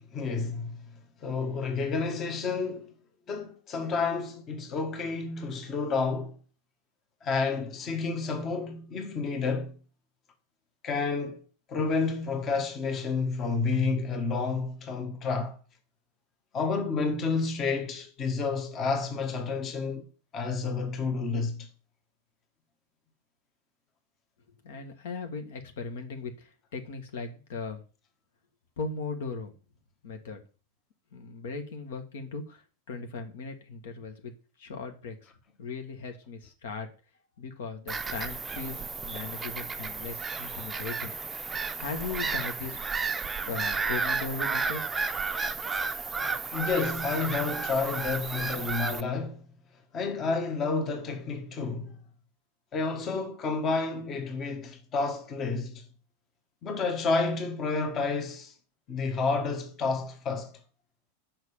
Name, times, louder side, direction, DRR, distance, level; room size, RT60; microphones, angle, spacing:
voice 1, 0.1-0.9 1.2-2.9 3.3-6.4 7.2-9.8 10.8-11.4 11.7-15.6 16.5-20.0 20.3-21.7 46.5-49.4 49.9-52.0 52.7-55.9 56.6-58.5 58.9-60.5, left 4 dB, 30° left, 1.5 m, -30 dB
voice 2, 24.6-27.8 28.8-29.5 30.0-30.4 31.1-34.3 34.6-35.3 35.6-36.9 37.4-41.1 41.8-42.8 43.4-44.8 45.4-45.5, left 4 dB, 55° left, 1.5 m, -38 dB
Bird vocalization bird call bird song / Gull seagull, 37.9-49.0, right 4 dB, 15° right, 0.6 m, -32 dB
6.4 x 5.8 x 7.2 m
figure-of-eight pair, 90°, 0 cm